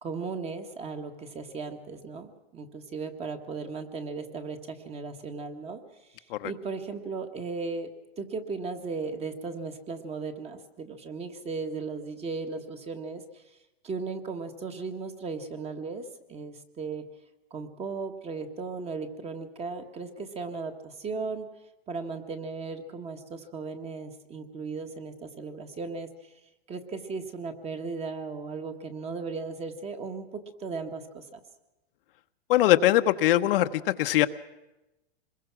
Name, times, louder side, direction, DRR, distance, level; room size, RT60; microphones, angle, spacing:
voice 1, 0.0-5.8 6.1-7.9 8.2-13.6 13.8-17.1 17.5-21.5 21.9-26.3 26.7-31.4, right 4 dB, 20° right, 7 dB, 1.6 m, -36 dB
voice 2, 32.5-34.3, left 14 dB, 60° left, 8 dB, 1.0 m, -22 dB
26.0 x 21.5 x 6.1 m, 0.99 s
supercardioid pair, 150°, 32 cm